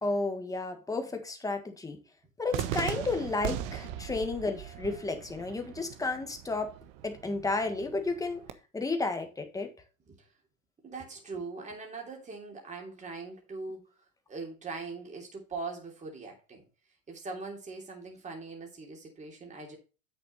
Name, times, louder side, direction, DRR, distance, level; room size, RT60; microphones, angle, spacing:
voice 1, 0.0-2.0 2.4-6.8 7.0-8.4 8.7-9.7, left 3 dB, 10° left, 1.6 m, -32 dB
Cheering / Fireworks, 2.5-8.5, right 11 dB, 60° right, 1.3 m, -39 dB
voice 2, 10.8-13.9 14.3-16.6 17.1-19.8, right 3 dB, 20° right, 3.1 m, -41 dB
8.2 x 6.7 x 4.1 m
supercardioid pair, 135°, 40 cm